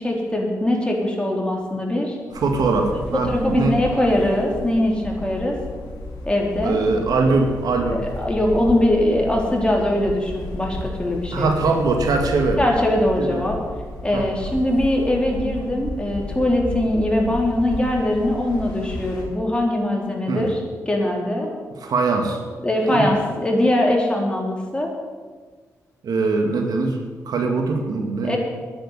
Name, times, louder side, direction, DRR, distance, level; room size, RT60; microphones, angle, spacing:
voice 1, 0.0-2.2 3.3-5.6 6.3-6.8 7.9-11.6 12.6-13.6 14.0-20.6 20.9-21.5 22.6-24.9 28.2-28.4, left 1 dB, 15° left, -1 dB, 4.0 m, -21 dB
sound 1, 2.3-19.3, left 2 dB, 90° left, 2.4 m, -33 dB
voice 2, 2.3-3.8 6.6-8.0 11.3-12.6 13.2-13.4 14.1-14.6 20.3-20.5 21.8-22.4 22.9-23.1 26.0-27.0 27.3-28.4, right 3 dB, 75° right, 4 dB, 1.9 m, -22 dB
10.0 x 8.6 x 9.9 m, 1.5 s
supercardioid pair, 50°, 7 cm